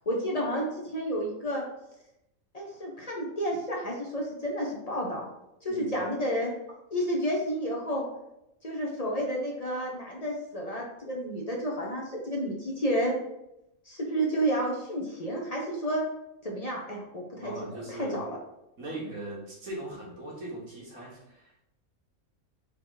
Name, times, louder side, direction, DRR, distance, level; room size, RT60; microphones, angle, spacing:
voice 1, 0.1-1.6 2.5-5.3 5.6-6.5 6.9-8.1 8.6-13.1 13.9-16.0 16.4-18.4, equal, 35° left, -2 dB, 0.7 m, -31 dB
voice 2, 17.4-18.2 18.8-21.6, right 1 dB, 75° right, -4 dB, 1.9 m, -39 dB
4.6 x 3.0 x 3.8 m, 0.85 s
omnidirectional pair, 1.5 m